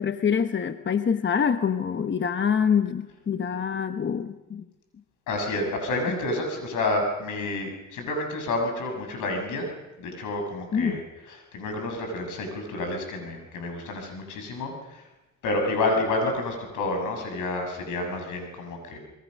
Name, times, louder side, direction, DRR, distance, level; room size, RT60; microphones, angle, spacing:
voice 1, 0.0-4.6 10.7-11.0, left 7 dB, 40° left, 9 dB, 1.2 m, -25 dB
voice 2, 5.3-9.7 10.0-11.0 11.3-15.0 15.4-19.0, left 2 dB, 85° left, 4 dB, 7.2 m, -29 dB
28.0 x 22.0 x 6.6 m, 1.0 s
cardioid pair, 90°, 30 cm